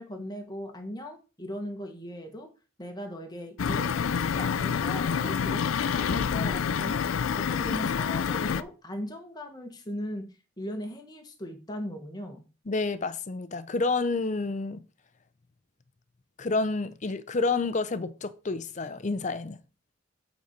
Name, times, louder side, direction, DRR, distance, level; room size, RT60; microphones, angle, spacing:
voice 1, 0.0-2.5 2.8-7.0 7.4-10.2 10.6-12.4, equal, 20° left, 1.2 m, -38 dB
sound 1, 3.6-8.6, left 7 dB, 90° left, 0.4 m, -27 dB
voice 2, 12.7-14.8 16.4-19.6, left 3 dB, 40° left, 0.6 m, -29 dB
8.4 x 4.1 x 5.1 m
head